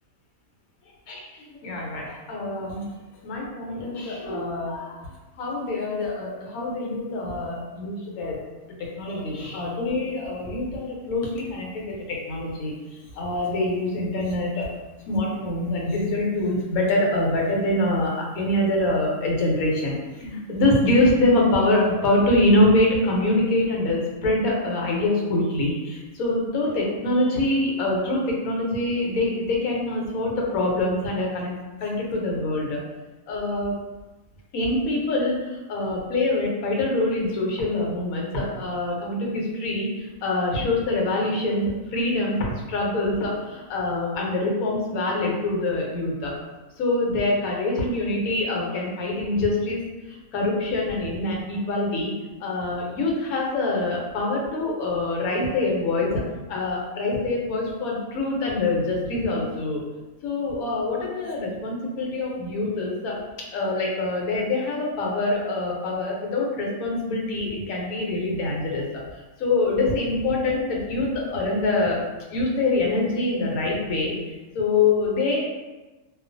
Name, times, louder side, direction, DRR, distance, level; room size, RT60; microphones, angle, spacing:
voice 1, 1.1-2.9 3.2-5.0 5.4-8.4 8.8-12.7 13.1-14.7 15.1-31.5 31.8-32.8 33.3-33.8 34.5-46.3 46.8-49.8 50.1-52.1 52.4-56.2 56.5-59.8 60.2-63.2 63.5-72.0 72.3-75.4, left 2 dB, 75° left, -2 dB, 1.1 m, -25 dB
2.4 x 2.4 x 2.5 m, 1.1 s
omnidirectional pair, 1.5 m